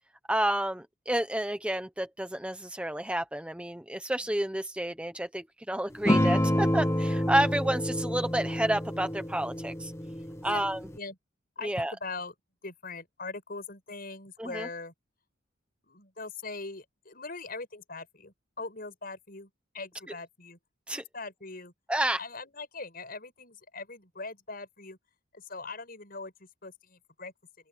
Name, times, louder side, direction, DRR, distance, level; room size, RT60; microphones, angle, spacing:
voice 1, 0.3-9.9 10.4-10.8 11.6-11.9 14.4-14.7 20.9-21.0 21.9-22.2, right 1 dB, 5° right, 1.1 m, -30 dB
sound 1, 6.1-11.0, equal, 15° left, 1.5 m, -28 dB
voice 2, 11.6-12.3 12.6-14.9 15.8-20.6 20.9-21.7 22.2-25.0 25.3-27.3, left 3 dB, 50° left, 6.9 m, -41 dB
open air
head